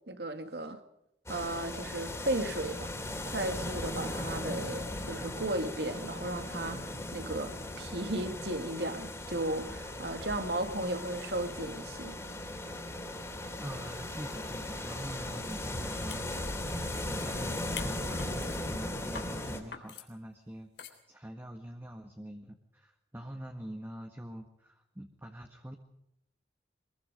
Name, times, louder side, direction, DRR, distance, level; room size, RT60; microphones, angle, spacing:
voice 1, 0.1-0.8 1.3-2.9 3.3-12.2, right 1 dB, 70° right, 2.2 m, -35 dB
sound 1, 1.3-19.6, left 1 dB, 15° left, 3.3 m, -38 dB
voice 2, 13.6-16.6 17.1-25.7, equal, 15° right, 1.6 m, -45 dB
sound 2, 15.5-15.6 15.9-17.3 17.7-18.6 19.1-19.3 19.7-20.1 20.8-21.0, left 7 dB, 75° left, 3.6 m, -45 dB
24.5 x 21.5 x 5.2 m
head